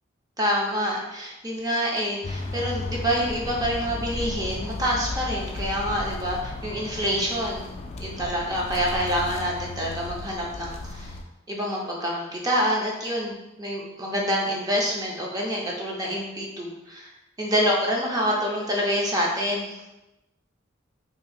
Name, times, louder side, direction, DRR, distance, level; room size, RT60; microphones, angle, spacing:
voice 1, 0.4-7.6 8.0-11.1 11.5-17.1 17.4-19.7, equal, 20° right, -2 dB, 0.6 m, -27 dB
sound 1, 2.2-11.2, left 2 dB, 30° left, 0.3 m, -34 dB
2.8 x 2.8 x 4.1 m, 0.97 s
head